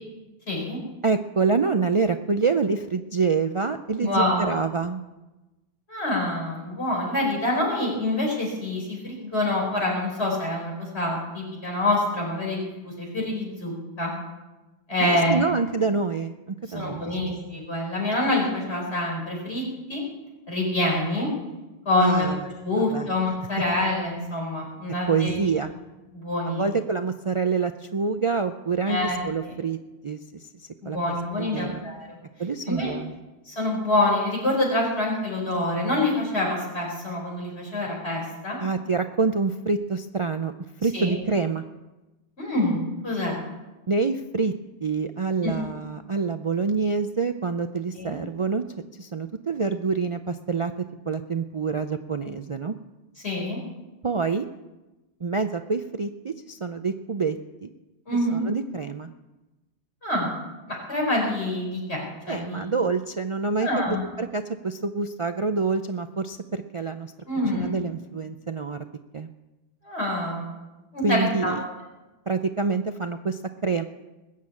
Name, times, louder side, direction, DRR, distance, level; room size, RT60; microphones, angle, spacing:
voice 1, 0.5-0.8 4.0-4.5 5.9-14.1 14.9-15.5 16.7-19.6 19.9-20.0 20.5-21.3 21.8-22.3 22.6-25.4 26.1-26.6 28.9-29.5 30.8-32.2 32.7-32.9 33.5-38.6 40.9-41.1 42.4-43.4 45.4-45.5 48.0-48.2 53.2-53.6 58.1-58.4 60.0-60.3 60.9-62.6 63.6-64.0 67.3-67.8 69.8-70.5 70.9-71.6, left 1 dB, 70° left, -2 dB, 5.0 m, -26 dB
voice 2, 1.0-5.0 15.0-17.0 22.0-22.4 22.8-23.1 25.1-25.7 26.5-29.8 30.0-30.5 30.8-31.0 31.3-31.8 32.4-33.2 38.6-40.5 40.8-41.6 43.9-44.5 44.8-48.6 49.0-50.7 51.1-52.8 54.0-54.5 55.2-57.7 58.3-59.1 62.3-63.7 64.2-67.1 67.5-68.8 69.1-69.3 71.0-71.6 72.3-73.8, right 4 dB, 40° right, 8 dB, 0.4 m, -26 dB
20.0 x 7.5 x 8.5 m, 1.1 s
omnidirectional pair, 1.1 m